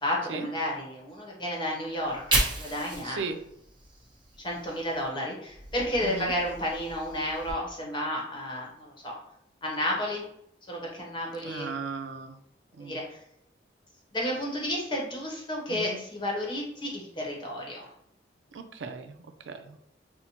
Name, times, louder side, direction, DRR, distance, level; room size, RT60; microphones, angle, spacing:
voice 1, 0.0-3.2 4.4-9.2 9.6-10.2 10.7-11.7 12.7-13.2 14.1-17.9, left 1 dB, 25° left, -2 dB, 0.9 m, -32 dB
Fire, 1.9-5.1 5.5-7.5, right 2 dB, 25° right, 0.9 m, -34 dB
voice 2, 3.0-3.4 6.0-6.3 11.4-12.4 12.7-13.0 15.7-16.0 18.5-19.8, right 4 dB, 85° right, 8 dB, 0.4 m, -37 dB
5.5 x 2.1 x 2.9 m, 0.76 s
head